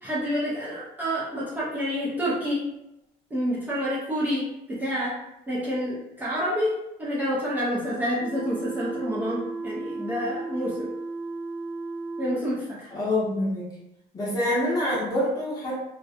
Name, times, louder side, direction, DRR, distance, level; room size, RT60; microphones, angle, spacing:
voice 1, 0.0-2.6 3.3-5.2 5.5-6.7 7.0-10.9 12.2-12.9, equal, 10° right, -9 dB, 0.4 m, -28 dB
sound 1, 8.2-12.4, right 3 dB, 70° right, 0.5 m, -34 dB
voice 2, 12.9-13.7 14.1-15.7, left 1 dB, 20° left, -6 dB, 0.7 m, -26 dB
2.4 x 2.1 x 2.5 m, 0.88 s
cardioid pair, 175°, 18 cm